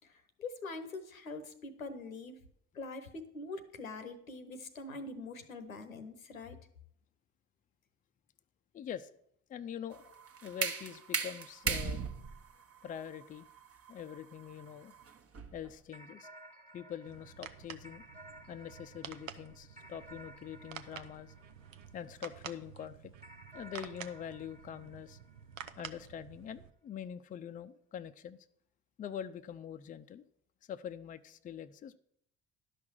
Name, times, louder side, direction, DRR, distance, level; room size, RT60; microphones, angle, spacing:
voice 1, 0.0-2.4 2.7-6.6, left 3 dB, 85° left, 10 dB, 0.9 m, -44 dB
voice 2, 8.7-9.1 9.5-12.0 12.8-13.5 13.9-14.9 15.5-16.3 16.7-18.0 18.5-21.3 21.9-23.1 23.5-25.2 25.8-28.4 29.0-30.2 30.7-32.0, left 9 dB, 20° left, 10 dB, 0.5 m, -44 dB
sound 1, 9.9-15.7, right 6 dB, 35° right, 1.0 m, -38 dB
sound 2, 15.9-22.5 23.2-26.0, right 1 dB, 15° right, 1.5 m, -56 dB
sound 3, 17.1-26.7, right 8 dB, 75° right, 0.7 m, -50 dB
11.5 x 5.9 x 6.3 m, 0.70 s
figure-of-eight pair, 50°, 40 cm